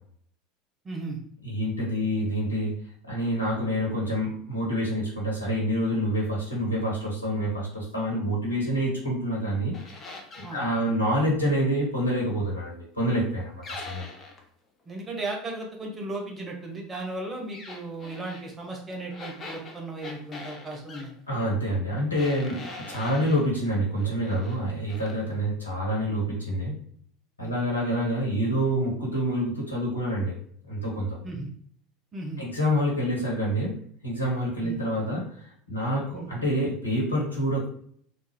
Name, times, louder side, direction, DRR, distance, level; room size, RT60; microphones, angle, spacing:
voice 1, 0.8-1.2 10.4-10.6 14.9-21.1 27.4-27.5 31.2-31.5 32.1-32.4 34.6-34.8 36.1-36.3, right 2 dB, 20° right, 0 dB, 1.1 m, -35 dB
voice 2, 1.4-2.7 3.0-9.9 10.4-14.1 21.3-26.7 27.4-30.3 30.7-31.2 32.4-33.8 34.0-35.3 35.7-37.7, equal, 85° left, -4 dB, 1.2 m, -27 dB
sound 1, 9.7-10.6 13.6-14.4 17.5-18.5 19.1-21.1 22.1-23.5 24.0-24.6 24.9-25.2, left 3 dB, 30° left, 0.8 m, -42 dB
3.5 x 2.4 x 3.6 m, 0.62 s
figure-of-eight pair, 75°, 0 cm